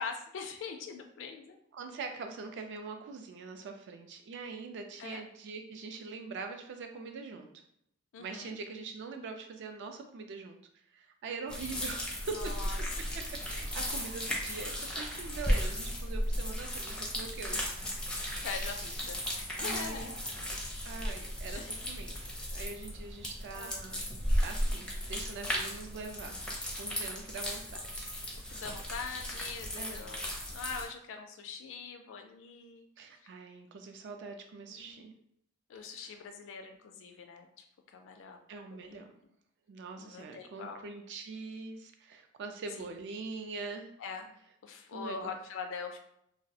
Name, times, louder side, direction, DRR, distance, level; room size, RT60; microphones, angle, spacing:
voice 1, 0.0-1.6 5.0-5.2 8.1-8.5 12.3-12.8 18.4-20.5 21.5-21.8 23.5-23.8 24.7-24.9 28.5-30.2 30.5-32.9 33.2-33.3 34.7-35.1 35.7-37.5 37.9-38.4 38.7-39.1 40.0-40.9 42.8-43.0 44.0-44.3 44.6-46.0, left 5 dB, 65° left, 5 dB, 0.4 m, -43 dB
voice 2, 1.7-7.5 8.2-10.6 10.9-12.5 13.1-17.7 19.6-20.1 20.8-22.1 22.5-24.0 24.4-26.4 26.8-28.4 29.7-30.1 33.0-35.1 38.5-39.1 39.7-43.9 44.9-45.3, right 4 dB, 60° right, 5 dB, 0.3 m, -43 dB
sound 1, 11.5-30.8, equal, 5° left, 0.5 m, -35 dB
2.3 x 2.0 x 2.6 m, 0.75 s
head